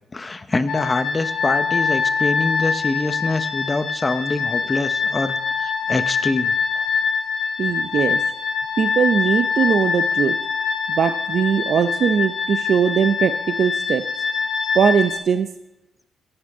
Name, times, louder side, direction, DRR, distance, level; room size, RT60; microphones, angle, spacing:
voice 1, 0.1-6.9, left 3 dB, 25° left, 11 dB, 0.9 m, -25 dB
sound 1, 0.7-15.2, left 5 dB, 70° left, 2.0 m, -24 dB
voice 2, 7.6-8.2 8.8-10.4 10.9-14.0 14.7-15.5, right 7 dB, 55° right, 9 dB, 0.6 m, -20 dB
14.0 x 8.8 x 5.5 m, 0.92 s
cardioid pair, 90°, 0 cm